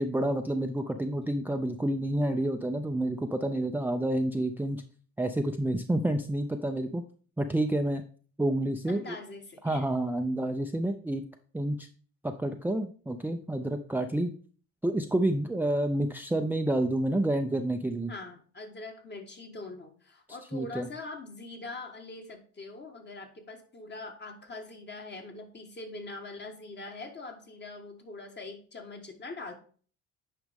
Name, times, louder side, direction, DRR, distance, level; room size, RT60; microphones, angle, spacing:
voice 1, 0.0-4.8 5.2-7.0 7.4-8.0 8.4-9.2 9.6-11.2 11.5-11.9 12.2-14.3 14.8-18.1 20.5-20.9, right 1 dB, 5° right, 6 dB, 0.5 m, -29 dB
voice 2, 8.9-9.8 18.1-29.5, left 3 dB, 35° left, 4 dB, 1.6 m, -43 dB
9.3 x 5.0 x 3.6 m, 0.43 s
cardioid pair, 90°, 30 cm